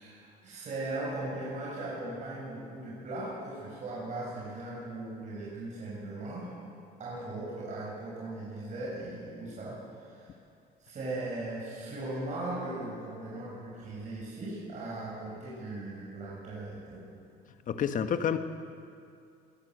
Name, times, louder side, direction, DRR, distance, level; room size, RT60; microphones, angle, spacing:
voice 1, 0.0-6.5 7.0-10.3 10.8-17.0, right 2 dB, 45° right, -7 dB, 7.2 m, -38 dB
voice 2, 17.7-18.4, left 8 dB, 50° left, 8 dB, 1.4 m, -28 dB
22.0 x 15.0 x 8.0 m, 2.4 s
cardioid pair, 110°, 17 cm